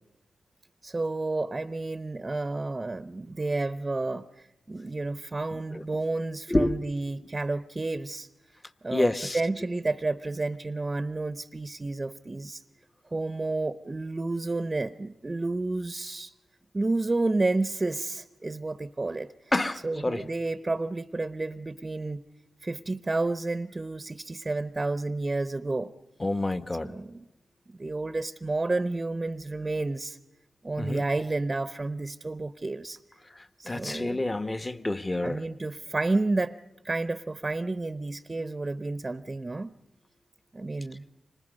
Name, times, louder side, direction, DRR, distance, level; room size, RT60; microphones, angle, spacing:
voice 1, 0.8-8.3 8.8-12.6 13.1-16.3 16.7-19.3 19.8-22.3 22.6-25.9 26.8-27.2 27.7-30.2 30.6-33.0 33.6-34.2 35.2-36.6 36.8-39.7 40.5-41.1, right 2 dB, 35° right, 13 dB, 0.8 m, -30 dB
voice 2, 5.5-5.8 6.5-6.8 8.9-9.4 19.5-20.2 26.2-26.9 30.8-31.0 33.4-35.4, left 2 dB, 25° left, 11 dB, 1.3 m, -28 dB
29.5 x 25.5 x 5.3 m, 0.94 s
supercardioid pair, 45°, 0 cm